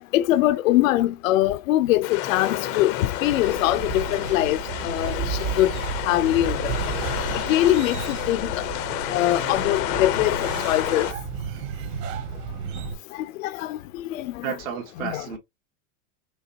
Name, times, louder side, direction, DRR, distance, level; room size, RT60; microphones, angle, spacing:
voice 1, 0.1-4.6 4.8-5.7 6.1-6.7 7.5-8.5 9.1-11.1 13.4-13.8 14.1-14.5 15.0-15.3, left 15 dB, 75° left, 0.6 m, -22 dB
sound 1, 2.0-11.1, left 12 dB, 30° left, 0.5 m, -30 dB
sound 2, 3.2-13.0, right 6 dB, 55° right, 1.5 m, -33 dB
voice 2, 14.4-15.4, right 9 dB, 80° right, 2.0 m, -32 dB
5.4 x 3.5 x 2.6 m
supercardioid pair, 165°, 40 cm